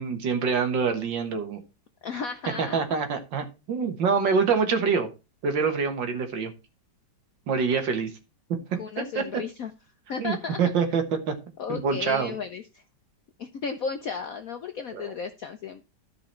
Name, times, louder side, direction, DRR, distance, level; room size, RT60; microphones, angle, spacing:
voice 1, 0.0-1.6 2.6-5.1 5.4-6.5 7.5-8.1 9.0-9.2 10.2-11.3 11.7-12.4 14.9-15.1, right 5 dB, 65° right, 7 dB, 2.0 m, -25 dB
voice 2, 2.0-2.8 8.8-9.7 10.1-10.6 11.6-12.8 13.4-15.8, left 5 dB, 65° left, 7 dB, 0.9 m, -34 dB
12.5 x 5.0 x 4.4 m, 0.29 s
omnidirectional pair, 2.2 m